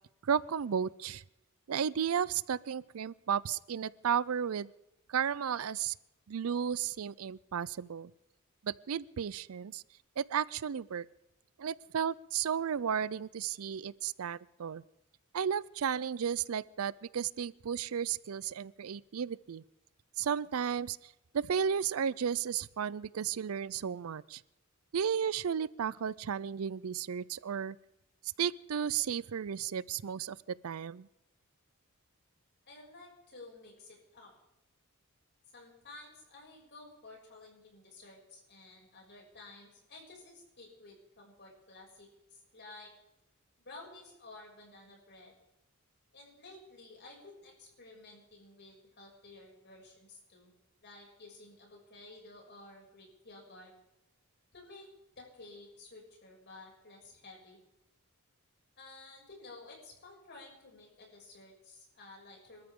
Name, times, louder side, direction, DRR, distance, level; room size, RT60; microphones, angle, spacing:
voice 1, 0.2-1.2 1.7-4.7 5.1-5.9 6.3-8.1 8.6-9.8 10.2-11.1 11.6-14.8 15.3-19.6 20.2-24.4 24.9-27.8 28.4-30.4 30.6-31.1, right 7 dB, 80° right, 21 dB, 0.5 m, -33 dB
voice 2, 32.6-34.3 35.5-42.9 43.6-45.3 46.1-50.5 50.8-53.7 54.5-54.9 55.2-57.6 58.8-62.7, left 2 dB, 55° left, -2 dB, 6.6 m, -53 dB
25.0 x 13.5 x 3.8 m, 0.87 s
head